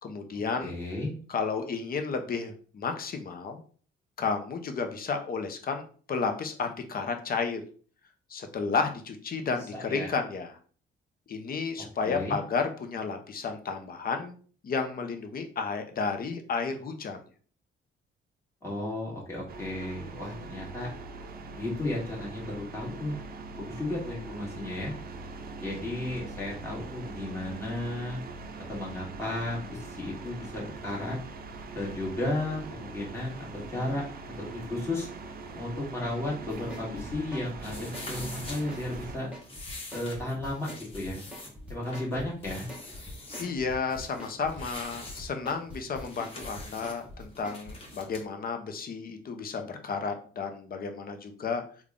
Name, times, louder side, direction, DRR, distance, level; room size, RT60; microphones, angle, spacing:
voice 1, 0.0-0.7 1.3-3.6 4.2-7.6 8.3-10.6 11.3-14.4 14.6-17.2 43.4-51.6, left 5 dB, 50° left, 6 dB, 0.7 m, -32 dB
voice 2, 0.6-1.1 9.7-10.1 12.0-12.4 18.6-20.9 21.5-23.1 23.5-24.9 25.6-28.2 28.7-31.2 31.7-34.0 34.4-35.1 35.5-39.3 39.9-41.2 41.7-42.7, left 1 dB, 15° left, -5 dB, 1.8 m, -34 dB
sound 1, 19.5-39.2, right 3 dB, 50° right, 0.5 m, -42 dB
sound 2, 36.5-47.7, left 1 dB, 5° right, 1.3 m, -43 dB
sound 3, 37.6-48.2, left 2 dB, 30° left, 1.3 m, -45 dB
3.5 x 2.4 x 3.6 m, 0.42 s
cardioid pair, 90°, 20 cm